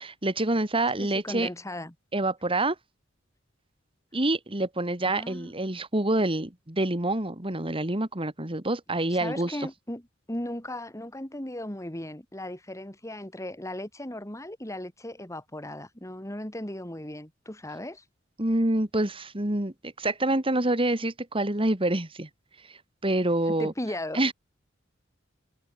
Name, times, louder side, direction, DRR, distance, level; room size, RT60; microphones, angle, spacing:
voice 1, 0.0-1.5 2.1-2.8 4.1-9.6 18.4-22.3 22.7-23.7 24.1-24.3, right 2 dB, 30° right, 2.4 m, -27 dB
voice 2, 1.0-1.9 5.0-5.5 9.1-10.0 10.3-18.0 23.5-24.3, left 1 dB, 15° left, 3.4 m, -37 dB
open air
head